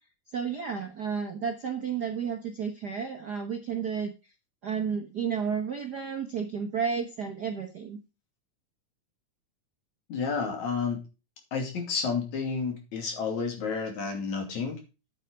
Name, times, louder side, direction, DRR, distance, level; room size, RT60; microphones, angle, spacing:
voice 1, 0.3-4.1 4.6-8.0, right 6 dB, 55° right, 4 dB, 1.2 m, -32 dB
voice 2, 10.1-11.0 11.5-14.8, left 5 dB, 65° left, 4 dB, 4.0 m, -30 dB
9.3 x 8.9 x 4.5 m, 0.29 s
omnidirectional pair, 3.6 m